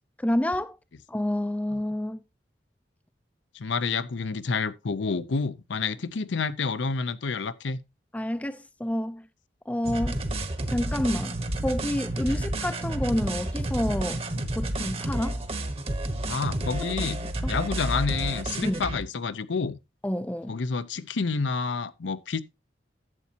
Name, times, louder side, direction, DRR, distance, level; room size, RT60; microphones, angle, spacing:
voice 1, 0.2-0.8 1.1-2.2 8.1-9.3 9.7-10.2 10.7-14.2 14.6-15.4 16.8-17.1 17.4-17.5 18.6-18.8 20.0-20.5, left 1 dB, 10° left, 0.4 m, -29 dB
voice 2, 3.5-7.8 12.3-12.5 16.3-17.2 17.5-19.8 20.5-22.4, left 4 dB, 85° left, 0.6 m, -29 dB
sound 1, 9.8-19.0, right 1 dB, 30° right, 1.0 m, -30 dB
11.0 x 8.4 x 2.8 m
head